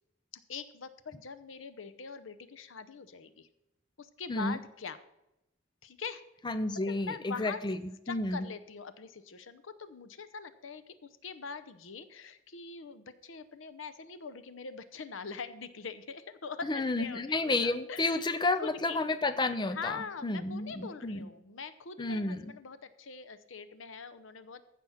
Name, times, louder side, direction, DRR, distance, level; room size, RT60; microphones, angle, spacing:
voice 1, 0.3-3.5 4.0-5.0 5.8-6.2 6.8-7.6 8.1-18.3 18.6-19.0 19.7-24.6, left 5 dB, 80° left, 13 dB, 0.8 m, -43 dB
voice 2, 6.4-7.8 8.1-8.5 16.7-21.3 22.0-22.4, left 2 dB, 25° left, 11 dB, 0.5 m, -31 dB
15.0 x 6.1 x 5.7 m, 0.90 s
head